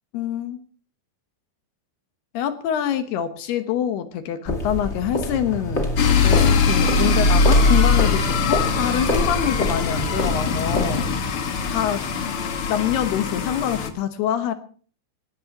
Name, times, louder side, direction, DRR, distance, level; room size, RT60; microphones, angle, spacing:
voice 1, 0.1-0.6 2.3-5.9 6.2-11.0 11.7-12.1 12.7-14.5, left 10 dB, 70° left, 9 dB, 2.9 m, -25 dB
sound 1, 4.4-11.3, left 1 dB, 25° left, 1.6 m, -27 dB
sound 2, 6.0-13.9, left 4 dB, 85° left, 1.2 m, -21 dB
22.5 x 18.5 x 3.0 m, 0.43 s
omnidirectional pair, 5.3 m